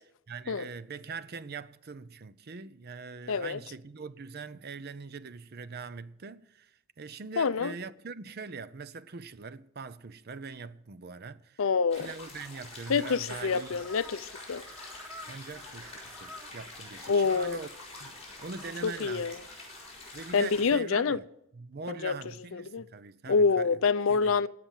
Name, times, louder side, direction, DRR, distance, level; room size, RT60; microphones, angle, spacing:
voice 1, 0.3-11.7 11.9-13.8 15.2-17.7 18.0-19.3 20.1-21.2 21.5-23.8 24.1-24.3, right 4 dB, 45° right, 0.6 m, -42 dB
voice 2, 3.3-3.6 7.4-7.7 11.6-12.1 12.9-14.6 17.1-17.6 18.8-19.4 20.3-21.2 21.9-22.2 22.5-22.8 23.3-24.5, left 5 dB, 65° left, 0.5 m, -27 dB
sound 1, 11.9-20.6, left 2 dB, 30° left, 5.5 m, -46 dB
sound 2, 13.3-20.0, left 1 dB, 5° right, 1.3 m, -52 dB
17.0 x 5.9 x 8.9 m
head